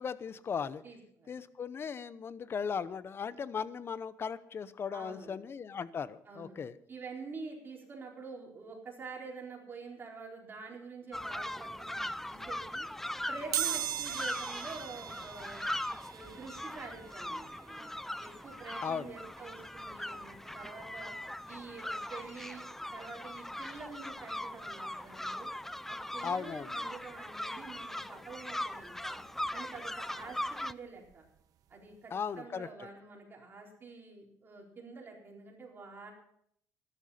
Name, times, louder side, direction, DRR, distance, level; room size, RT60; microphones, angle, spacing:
voice 1, 0.0-0.8 1.3-6.8 18.8-19.1 26.2-26.7 32.1-32.9, left 6 dB, 35° left, 16 dB, 0.8 m, -37 dB
voice 2, 0.8-1.3 4.9-5.4 6.3-6.6 6.9-12.9 13.3-15.6 16.1-17.9 18.2-21.1 21.5-22.7 22.9-25.5 25.9-29.2 29.5-31.2 31.7-36.1, right 4 dB, 35° right, -1 dB, 4.2 m, -47 dB
sound 1, 11.1-30.7, left 1 dB, 5° left, 0.4 m, -40 dB
sound 2, 13.5-24.2 24.7-24.8 25.9-26.0 26.3-28.4 28.7-31.4 31.7-31.9 32.2-32.3, right 12 dB, 60° right, 1.1 m, -42 dB
13.5 x 12.0 x 5.6 m, 0.71 s
cardioid pair, 115°, 7 cm